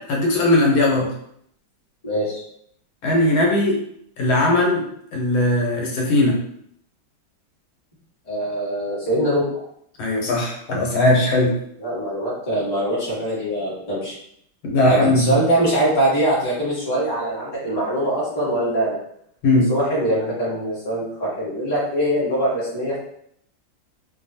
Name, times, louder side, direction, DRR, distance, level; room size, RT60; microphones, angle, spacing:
voice 1, 0.1-1.1 3.0-3.8 4.2-4.8 5.1-6.4 10.0-11.5 14.6-15.4 19.4-19.7, left 2 dB, 85° left, -1 dB, 1.6 m, -18 dB
voice 2, 2.0-2.4 8.3-9.7 11.8-14.1 14.8-19.0 19.7-23.0, right 1 dB, 20° left, -8 dB, 0.8 m, -22 dB
3.3 x 2.2 x 2.7 m, 0.70 s
omnidirectional pair, 2.2 m